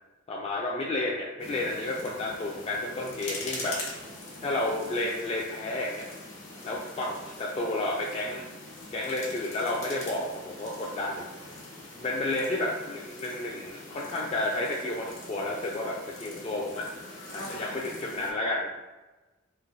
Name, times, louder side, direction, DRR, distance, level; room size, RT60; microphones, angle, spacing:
voice 1, 0.3-3.8 4.4-6.1 6.6-8.5 8.9-11.2 12.0-16.9 17.3-18.7, left 2 dB, 30° left, -3 dB, 0.3 m, -31 dB
sound 1, 1.4-18.3, left 2 dB, 70° left, 0.9 m, -43 dB
3.0 x 2.6 x 2.6 m, 1.1 s
head